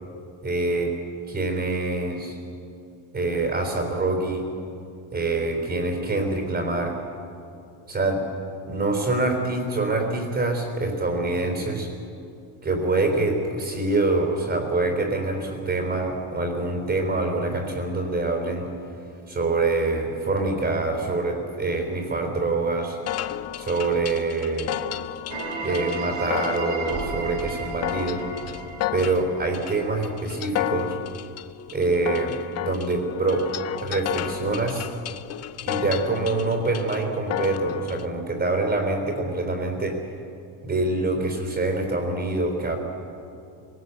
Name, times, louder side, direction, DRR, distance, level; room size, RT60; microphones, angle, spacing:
voice 1, 0.4-0.9 1.3-2.4 3.1-4.5 5.1-7.0 7.9-8.2 8.6-11.9 12.6-18.7 19.3-23.0 23.6-24.8 25.6-28.3 28.9-31.0 31.7-33.5 33.8-34.9 35.7-40.0 40.6-42.8, right 2 dB, 20° right, 2 dB, 3.7 m, -25 dB
sound 1, 23.1-38.1, left 13 dB, 35° left, 0.4 m, -33 dB
sound 2, 25.3-30.1, right 4 dB, 70° right, 4.2 m, -34 dB
sound 3, 26.9-32.8, right 2 dB, 90° right, 7.4 m, -41 dB
23.0 x 18.5 x 8.2 m, 2.6 s
cardioid pair, 155°, 47 cm